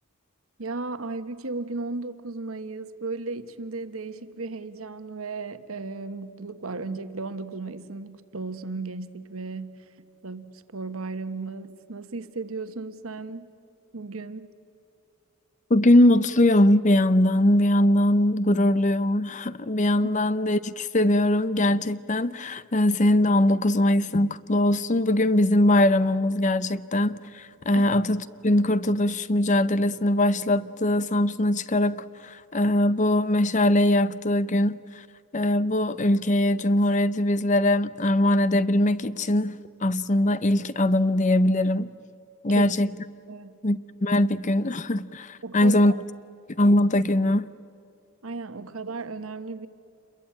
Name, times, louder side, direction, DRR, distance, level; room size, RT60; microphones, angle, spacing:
voice 1, 0.6-9.9 10.2-13.5 13.9-14.5 27.7-27.9 42.5-42.7 43.3-43.6 45.4-46.0 48.2-49.7, right 3 dB, 75° right, 1.3 m, -35 dB
voice 2, 15.7-34.8 35.3-41.9 42.4-42.9 43.6-45.9 46.6-47.5, left 1 dB, 35° left, 0.7 m, -21 dB
28.0 x 22.0 x 8.8 m
head